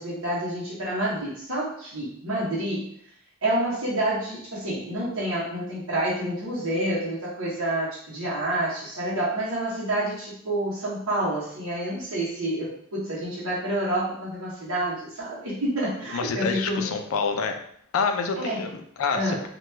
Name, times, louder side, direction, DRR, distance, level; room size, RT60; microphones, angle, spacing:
voice 1, 0.0-2.9 3.4-16.9 18.4-18.6 19.1-19.4, right 1 dB, 90° right, -7 dB, 0.8 m, -28 dB
voice 2, 16.1-17.5 17.9-19.4, left 5 dB, 85° left, 6 dB, 0.4 m, -27 dB
2.9 x 2.2 x 3.2 m, 0.65 s
head